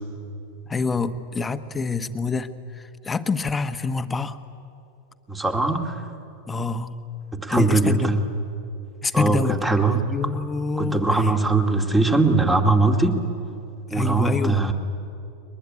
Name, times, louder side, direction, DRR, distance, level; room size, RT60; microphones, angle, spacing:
voice 1, 0.7-4.4 6.5-7.0 7.5-8.1 9.0-11.3 13.9-14.6, left 4 dB, 15° left, 10 dB, 1.2 m, -27 dB
voice 2, 5.3-6.0 7.3-8.2 9.1-10.0 10.8-13.2 13.9-14.7, right 3 dB, 10° right, 5 dB, 2.3 m, -21 dB
22.5 x 20.0 x 9.9 m, 2.7 s
hypercardioid pair, 105°, 0 cm